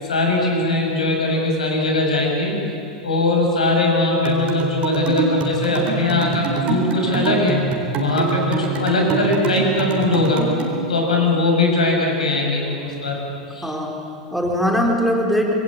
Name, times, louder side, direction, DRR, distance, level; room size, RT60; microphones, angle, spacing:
voice 1, 0.0-2.6 3.0-7.6 7.9-10.4 10.9-13.2 13.5-13.7, left 2 dB, 75° left, 0 dB, 6.4 m, -20 dB
sound 1, 4.3-10.8, right 4 dB, 30° right, 4.0 m, -25 dB
voice 2, 13.6-15.5, equal, ahead, 0 dB, 4.1 m, -21 dB
26.0 x 22.5 x 8.9 m, 2.7 s
figure-of-eight pair, 90°, 4 cm